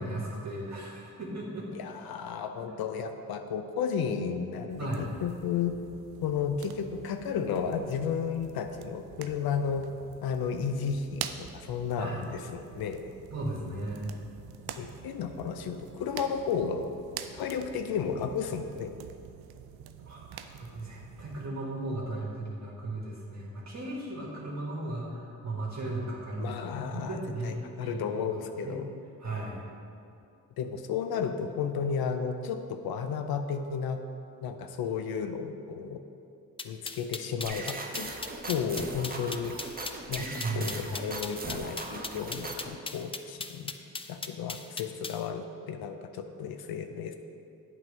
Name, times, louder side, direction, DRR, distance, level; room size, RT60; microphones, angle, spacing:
voice 1, 0.0-1.7 2.5-2.8 4.8-5.1 12.0-12.2 13.3-14.2 20.0-26.6 26.9-28.8 29.2-29.7 40.2-40.9, right 2 dB, 45° right, -4 dB, 1.6 m, -36 dB
voice 2, 1.7-4.9 5.2-5.8 6.2-9.9 10.2-13.0 14.8-16.9 17.3-18.9 26.4-28.8 30.6-34.0 34.4-36.0 36.6-38.1 38.5-39.5 40.1-40.3 40.5-43.7 44.1-47.2, left 6 dB, 75° left, 7 dB, 0.6 m, -33 dB
sound 1, 4.7-21.5, right 9 dB, 80° right, 0.5 m, -46 dB
sound 2, 36.6-45.2, left 4 dB, 15° left, 0.4 m, -38 dB
sound 3, 37.4-42.8, right 2 dB, 25° right, 0.9 m, -39 dB
8.0 x 3.9 x 5.2 m, 2.6 s
supercardioid pair, 55°, 36 cm